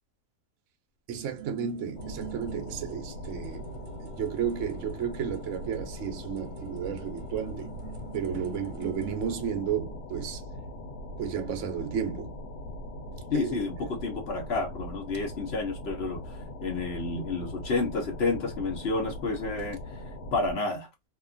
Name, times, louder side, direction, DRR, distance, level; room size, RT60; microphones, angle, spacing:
voice 1, 1.1-3.7 4.0-7.7 8.1-10.4 11.2-12.4 13.3-13.7, right 8 dB, 60° right, 0.9 m, -33 dB
sound 1, 1.1-9.4, right 8 dB, 85° right, 1.3 m, -46 dB
sound 2, 2.0-20.5, left 1 dB, 70° left, 1.2 m, -41 dB
voice 2, 13.3-16.2 16.6-19.8 20.3-20.9, left 3 dB, 50° left, 0.8 m, -30 dB
2.8 x 2.4 x 2.4 m
omnidirectional pair, 1.8 m